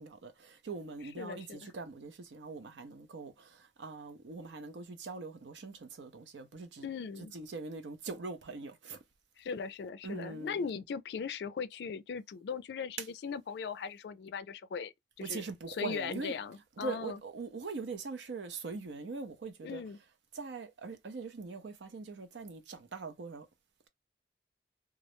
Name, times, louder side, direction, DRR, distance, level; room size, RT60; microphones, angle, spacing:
voice 1, 0.0-3.5 3.8-6.9 7.2-9.0 10.0-10.6 15.2-16.3 16.8-19.8 20.3-23.5, right 4 dB, 90° right, 0.6 m, -42 dB
voice 2, 1.2-1.7 6.8-7.3 9.4-17.2 19.6-20.0, left 6 dB, 70° left, 0.3 m, -39 dB
2.3 x 2.0 x 2.9 m
head